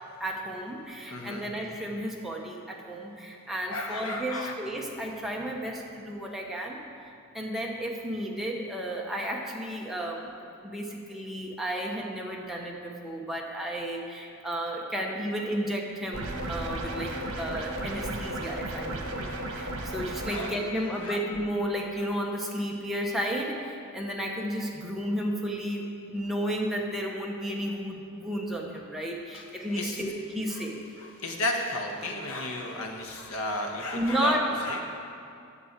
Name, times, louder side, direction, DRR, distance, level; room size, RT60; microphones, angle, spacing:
voice 1, 0.2-6.8 7.3-10.3 10.6-30.8 33.9-34.5, equal, ahead, -2 dB, 1.0 m, -33 dB
voice 2, 1.1-1.5 3.7-4.5 20.1-21.2 29.3-30.0 30.5-30.6 30.9-34.8, left 2 dB, 75° left, 2 dB, 1.3 m, -34 dB
sound 1, 16.1-20.5, right 1 dB, 70° right, 1.3 m, -34 dB
8.5 x 6.8 x 8.1 m, 2.4 s
head